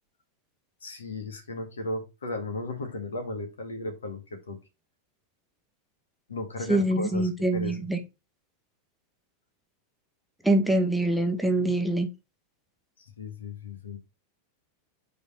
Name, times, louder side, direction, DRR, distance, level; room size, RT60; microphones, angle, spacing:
voice 1, 0.8-4.6 6.3-7.9 13.0-14.0, left 2 dB, 70° left, 2.0 m, -35 dB
voice 2, 6.7-8.0 10.4-12.1, right 1 dB, ahead, 1.1 m, -24 dB
5.1 x 4.3 x 5.7 m
figure-of-eight pair, 90°, 0 cm